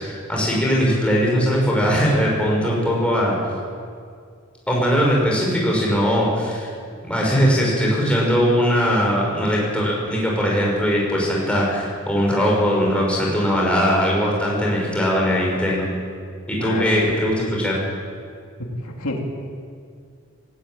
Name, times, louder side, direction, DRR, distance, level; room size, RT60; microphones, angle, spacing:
voice 1, 0.0-3.4 4.7-6.7 7.0-15.9 16.5-17.8, equal, 5° left, -3 dB, 5.3 m, -20 dB
voice 2, 16.6-17.1 18.6-19.2, left 2 dB, 85° left, 0 dB, 2.9 m, -29 dB
17.0 x 17.0 x 9.0 m, 2.2 s
head